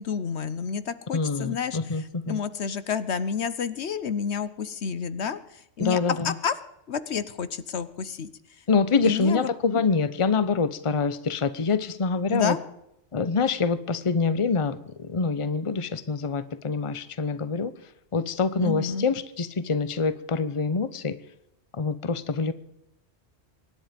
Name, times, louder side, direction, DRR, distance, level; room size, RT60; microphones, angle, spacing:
voice 1, 0.0-6.5 6.9-8.3 9.0-9.5 12.3-12.6 18.6-19.1, left 6 dB, 70° left, 14 dB, 1.2 m, -30 dB
voice 2, 1.1-2.4 5.8-6.3 8.7-12.6 13.1-17.7 18.1-21.2 21.7-22.5, left 4 dB, 30° left, 14 dB, 0.9 m, -25 dB
24.5 x 10.5 x 5.2 m, 0.83 s
omnidirectional pair, 1.2 m